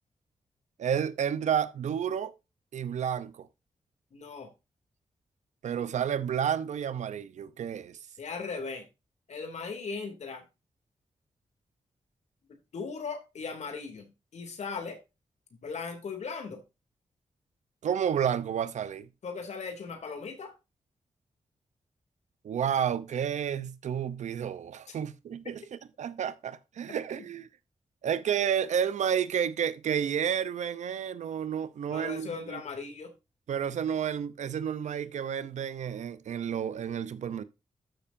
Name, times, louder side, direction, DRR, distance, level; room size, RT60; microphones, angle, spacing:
voice 1, 0.8-2.3 2.7-3.5 5.6-8.0 17.8-19.1 22.4-27.5 28.0-32.6 33.5-37.4, right 8 dB, 85° right, 0.7 m, -31 dB
voice 2, 4.1-4.5 8.2-8.9 9.3-10.4 12.5-15.0 15.6-16.6 19.2-20.5 24.9-25.0 31.9-33.1, left 4 dB, 75° left, 2.7 m, -38 dB
12.5 x 6.8 x 2.6 m
cardioid pair, 80°, 12 cm